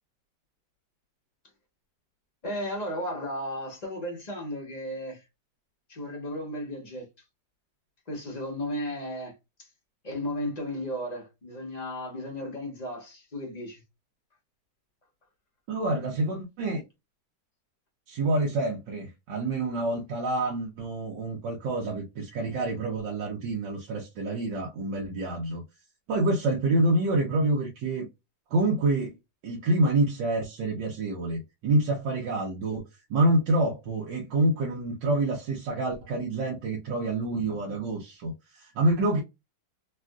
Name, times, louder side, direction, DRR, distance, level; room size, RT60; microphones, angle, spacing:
voice 1, 2.4-5.2 5.9-7.1 8.1-9.7 10.0-13.8, equal, 30° left, 0.8 m, -34 dB
voice 2, 15.7-16.8 18.1-25.6 26.1-28.1 28.5-29.2 29.4-39.2, right 2 dB, 85° right, 1.5 m, -27 dB
3.5 x 2.4 x 2.2 m
omnidirectional pair, 1.9 m